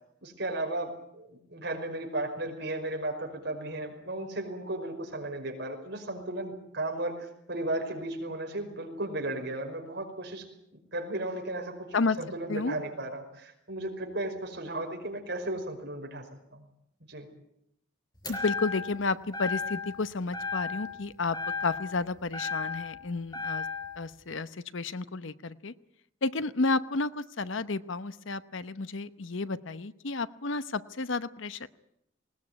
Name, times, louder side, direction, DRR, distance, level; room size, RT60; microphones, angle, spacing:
voice 1, 0.2-10.5 10.7-11.9 12.2-16.3 16.5-16.7 17.1-17.3, right 1 dB, 55° right, 3 dB, 5.3 m, -35 dB
sound 1, 18.2-19.0 19.3-20.0 20.3-21.0 21.3-23.0 23.3-24.0, left 4 dB, 20° left, 5.2 m, -34 dB
voice 2, 18.3-23.7 24.0-25.7 26.2-31.7, left 3 dB, 70° left, 14 dB, 0.9 m, -31 dB
20.0 x 19.5 x 9.6 m, 0.77 s
head